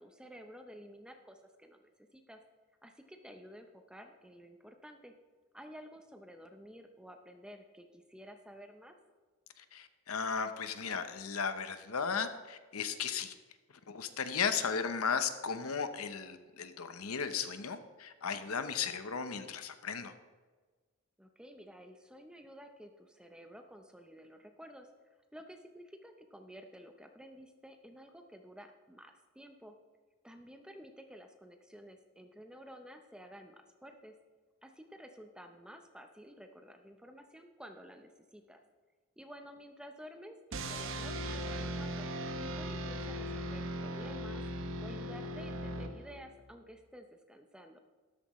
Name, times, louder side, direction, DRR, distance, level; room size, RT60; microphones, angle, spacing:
voice 1, 0.0-2.4 2.8-5.1 5.5-8.9 21.2-29.7 30.2-34.1 34.6-38.6 39.2-42.1 42.4-44.4 44.8-47.8, equal, 5° right, 5 dB, 0.7 m, -52 dB
voice 2, 9.6-13.3 13.9-20.1, left 6 dB, 85° left, 9 dB, 0.9 m, -35 dB
sound 1, 40.5-46.4, right 1 dB, 65° right, 0.9 m, -38 dB
13.0 x 12.5 x 3.2 m, 1.4 s
head